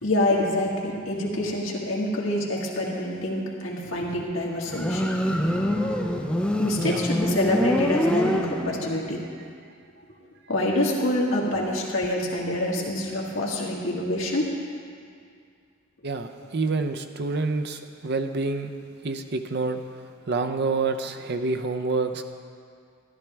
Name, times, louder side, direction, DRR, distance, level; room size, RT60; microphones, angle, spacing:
voice 1, 0.0-5.1 5.7-5.9 6.6-9.2 10.5-14.5, left 1 dB, 75° left, -2 dB, 1.8 m, -26 dB
Motorcycle, 4.6-9.0, equal, 5° left, 0.6 m, -25 dB
voice 2, 16.0-18.7 19.0-19.8 20.3-22.3, right 3 dB, 55° right, 7 dB, 0.7 m, -27 dB
13.0 x 12.0 x 3.5 m, 2.2 s
head